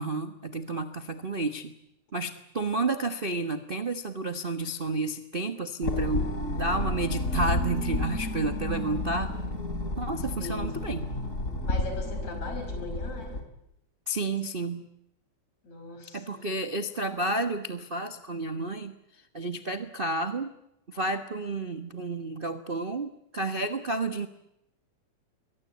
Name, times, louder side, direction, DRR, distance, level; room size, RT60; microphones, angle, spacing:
voice 1, 0.0-1.7 2.1-9.3 10.0-11.1 14.1-14.9 16.1-18.9 19.3-20.5 20.9-24.3, right 2 dB, 45° right, 8 dB, 0.6 m, -31 dB
sound 1, 5.8-13.4, left 2 dB, 25° left, 3.9 m, -31 dB
voice 2, 10.4-10.7 11.6-13.4 15.6-16.4, left 2 dB, 65° left, 5 dB, 7.2 m, -40 dB
28.5 x 22.5 x 8.5 m, 0.80 s
omnidirectional pair, 3.4 m